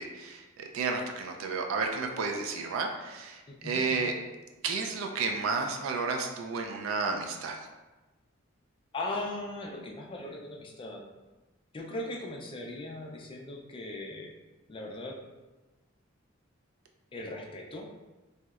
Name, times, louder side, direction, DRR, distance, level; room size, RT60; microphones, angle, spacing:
voice 1, 0.0-4.1 4.6-7.6, right 4 dB, 75° right, 3 dB, 0.4 m, -32 dB
voice 2, 3.5-4.1 8.9-11.0 11.7-14.3 14.7-15.2 17.1-17.9, left 2 dB, 25° left, 0 dB, 0.4 m, -39 dB
3.0 x 2.8 x 2.3 m, 1.1 s
head